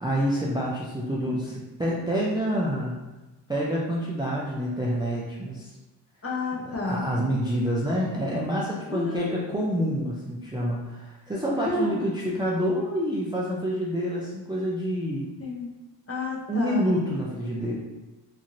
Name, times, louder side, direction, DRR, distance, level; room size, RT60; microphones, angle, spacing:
voice 1, 0.0-3.0 3.5-5.7 6.8-15.3 16.5-17.7, equal, 10° right, -5 dB, 0.3 m, -27 dB
voice 2, 6.2-7.1 8.9-9.4 11.6-12.1 15.4-15.7 16.1-16.9, left 2 dB, 30° left, -3 dB, 0.7 m, -30 dB
3.0 x 2.5 x 2.5 m, 1.1 s
cardioid pair, 90°, 44 cm